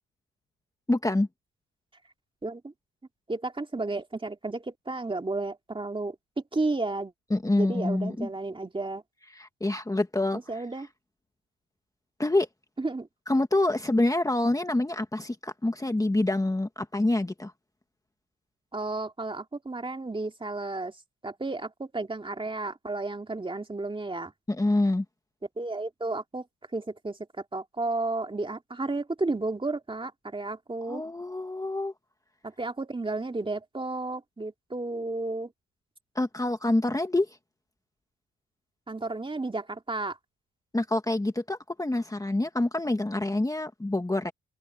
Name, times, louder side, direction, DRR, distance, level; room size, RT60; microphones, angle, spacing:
voice 1, 0.9-1.3 7.3-8.3 9.3-10.4 12.2-12.5 13.3-17.5 24.5-25.1 30.9-31.9 36.2-37.3 40.7-44.3, left 2 dB, 10° left, 1.7 m, -26 dB
voice 2, 2.4-2.7 3.3-7.1 7.6-9.0 10.3-10.9 12.8-13.1 18.7-21.0 21.2-24.3 25.6-26.4 26.7-27.2 27.5-31.0 32.4-35.5 38.9-40.2, right 2 dB, 15° right, 2.3 m, -32 dB
open air
cardioid pair, 90°, 30 cm